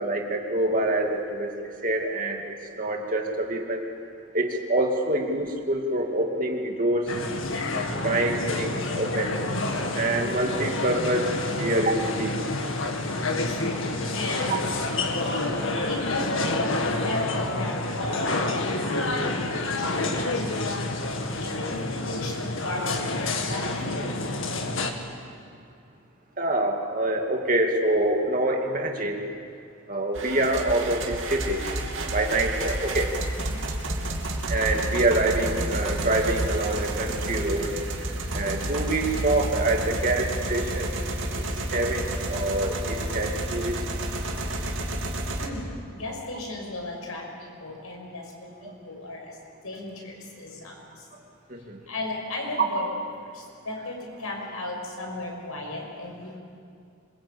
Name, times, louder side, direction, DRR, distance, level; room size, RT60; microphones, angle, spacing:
voice 1, 0.0-3.9 4.3-7.1 8.0-9.4 10.0-12.4 14.5-14.6 26.4-29.2 29.9-31.6 32.1-33.1 34.5-37.8 38.3-40.9 41.4-43.8 51.5-51.8, right 2 dB, 40° right, 2 dB, 2.4 m, -26 dB
sound 1, 7.1-24.9, left 2 dB, 65° left, 2.1 m, -28 dB
voice 2, 13.4-14.5 15.2-24.7 33.3-33.6 45.4-49.4 49.6-51.0 51.9-52.8 53.2-56.4, left 2 dB, 85° left, 1 dB, 6.1 m, -36 dB
Tractor Kleinland Pony, 30.1-45.5, right 1 dB, 60° right, 3.0 m, -30 dB
26.5 x 22.5 x 8.7 m, 2.4 s
head